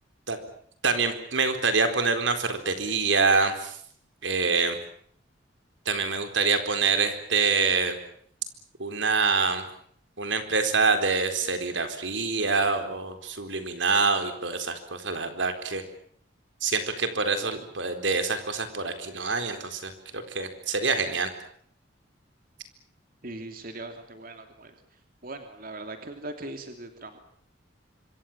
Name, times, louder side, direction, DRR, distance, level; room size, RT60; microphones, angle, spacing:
voice 1, 0.8-3.8 4.2-4.8 5.9-8.0 8.8-9.6 10.2-15.8 16.6-21.3, right 4 dB, 80° right, 8 dB, 4.2 m, -26 dB
voice 2, 23.2-24.7 25.2-27.2, right 2 dB, 50° right, 6 dB, 3.0 m, -40 dB
26.0 x 25.0 x 7.4 m, 0.62 s
head